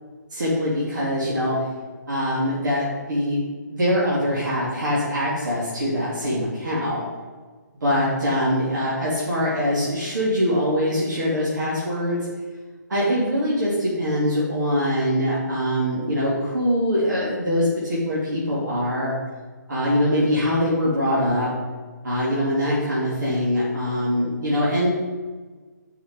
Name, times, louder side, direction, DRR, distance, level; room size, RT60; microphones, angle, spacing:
voice 1, 0.3-1.6 2.1-3.4 3.7-7.0 7.8-12.3 12.9-19.1 19.7-21.5 22.0-24.9, equal, 75° right, -6 dB, 2.8 m, -23 dB
9.2 x 5.7 x 5.4 m, 1.4 s
hypercardioid pair, 155°, 10 cm